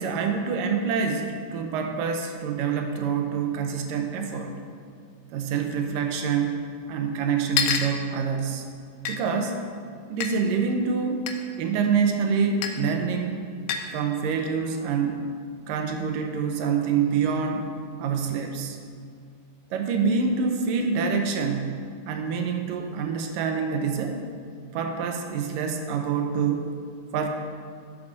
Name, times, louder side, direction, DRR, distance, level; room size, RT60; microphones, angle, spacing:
voice 1, 0.0-4.6 5.3-6.6 6.9-8.7 9.1-9.6 10.1-11.3 11.6-13.4 13.9-15.3 15.7-17.7 18.0-18.8 19.7-24.2 24.7-26.7 27.1-27.3, right 5 dB, 75° right, 4 dB, 2.3 m, -26 dB
sound 1, 7.6-7.9 9.0-9.2 10.2-10.3 11.3-11.4 12.6-12.8 13.7-13.9, left 7 dB, 80° left, 2.4 m, -27 dB
9.6 x 7.6 x 6.4 m, 2.2 s
omnidirectional pair, 4.2 m